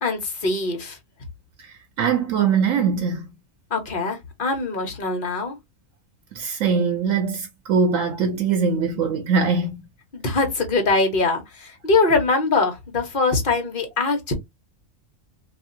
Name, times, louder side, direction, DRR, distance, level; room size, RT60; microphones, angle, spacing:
voice 1, 0.0-1.0 3.7-5.6 10.1-14.3, left 3 dB, 45° left, 1.1 m, -22 dB
voice 2, 1.6-3.3 6.3-9.7, right 5 dB, 85° right, 1.0 m, -22 dB
2.8 x 2.7 x 2.5 m
omnidirectional pair, 1.3 m